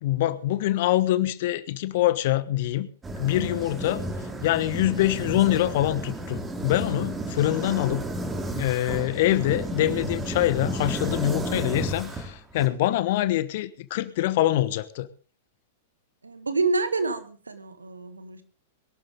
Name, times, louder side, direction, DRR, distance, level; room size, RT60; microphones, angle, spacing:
voice 1, 0.0-2.9 3.2-4.0 4.4-8.1 8.5-15.1, left 14 dB, 50° left, 16 dB, 1.1 m, -24 dB
sound 1, 3.0-12.7, right 1 dB, 15° right, 2.3 m, -32 dB
voice 2, 16.2-18.4, right 3 dB, 75° right, 11 dB, 1.7 m, -28 dB
22.0 x 12.0 x 3.6 m, 0.37 s
figure-of-eight pair, 100°, 0 cm